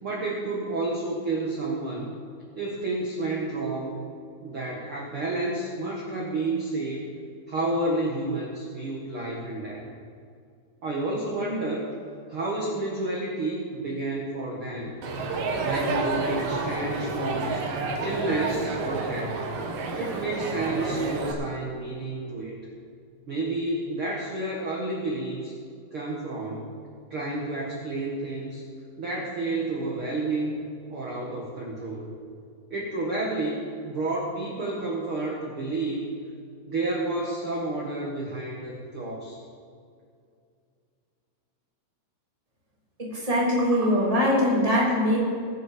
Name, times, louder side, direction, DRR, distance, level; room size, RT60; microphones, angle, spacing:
voice 1, 0.0-2.1 2.5-4.0 4.4-7.1 7.5-9.8 10.8-11.9 12.3-14.9 15.6-17.6 18.0-19.4 19.9-22.5 23.3-25.5 25.9-26.6 27.1-28.6 29.0-32.1 32.7-36.1 36.6-39.4, right 2 dB, 85° right, -3 dB, 1.1 m, -30 dB
Crowd, 15.0-21.3, right 3 dB, 65° right, 1.8 m, -30 dB
voice 2, 43.2-45.2, left 1 dB, 10° right, -6 dB, 2.3 m, -22 dB
21.5 x 7.9 x 5.1 m, 2.3 s
omnidirectional pair, 5.3 m